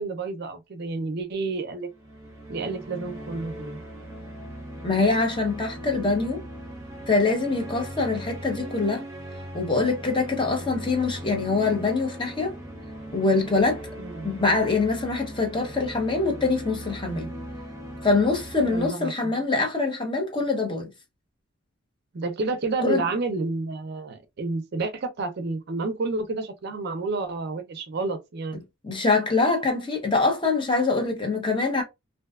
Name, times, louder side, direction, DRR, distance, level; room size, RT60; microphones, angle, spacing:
voice 1, 0.0-1.9 2.5-3.8 14.0-14.3 18.6-19.3 22.1-28.6, right 3 dB, 50° right, 0.4 m, -30 dB
sound 1, 1.9-18.9, right 1 dB, 15° right, 0.7 m, -39 dB
voice 2, 4.8-6.4 7.1-9.0 9.5-12.5 13.1-13.8 14.2-17.3 18.0-20.9 22.8-23.0 28.8-31.8, left 3 dB, 25° left, 0.7 m, -24 dB
2.5 x 2.2 x 2.2 m
head